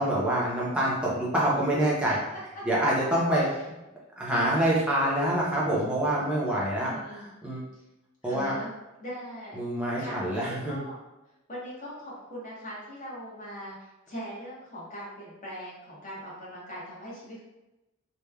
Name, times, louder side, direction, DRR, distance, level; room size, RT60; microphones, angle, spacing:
voice 1, 0.0-2.2 2.6-3.5 4.2-7.6 8.2-8.5 9.5-10.8, right 1 dB, 5° right, -6 dB, 0.6 m, -26 dB
voice 2, 2.1-2.4 3.3-3.5 6.8-7.3 7.7-7.8 8.2-8.7 9.0-9.6 10.0-11.0 11.5-17.4, equal, 35° left, -7 dB, 1.0 m, -41 dB
3.1 x 2.2 x 2.3 m, 0.99 s
head